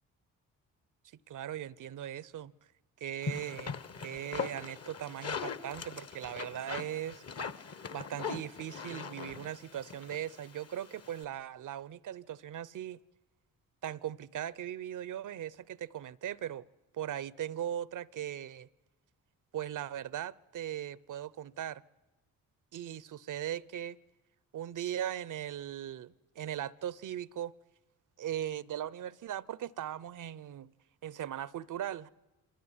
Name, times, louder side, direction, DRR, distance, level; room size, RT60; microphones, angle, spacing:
voice 1, 1.3-2.5 3.0-3.7 4.0-7.2 7.9-13.0 13.8-16.6 16.9-18.7 19.5-21.8 22.7-24.0 24.5-27.5 28.2-30.7 31.0-32.1, right 11 dB, 60° right, 0.8 m, -39 dB
sound 1, 3.2-11.2, left 5 dB, 40° left, 1.4 m, -41 dB
25.0 x 19.0 x 9.7 m
supercardioid pair, 55°, 36 cm